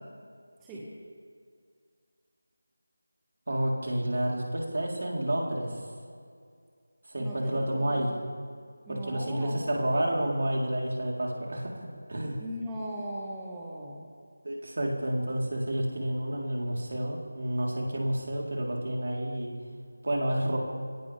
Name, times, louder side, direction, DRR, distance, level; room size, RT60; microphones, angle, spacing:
voice 1, 3.5-5.9 7.1-8.1 8.9-12.4 14.4-19.5 20.0-20.6, right 1 dB, 55° right, -2 dB, 4.0 m, -30 dB
voice 2, 7.2-8.2 8.9-9.6 12.4-14.1, right 1 dB, 10° right, -5 dB, 1.9 m, -38 dB
23.0 x 18.0 x 3.6 m, 2.2 s
figure-of-eight pair, 165°, 0 cm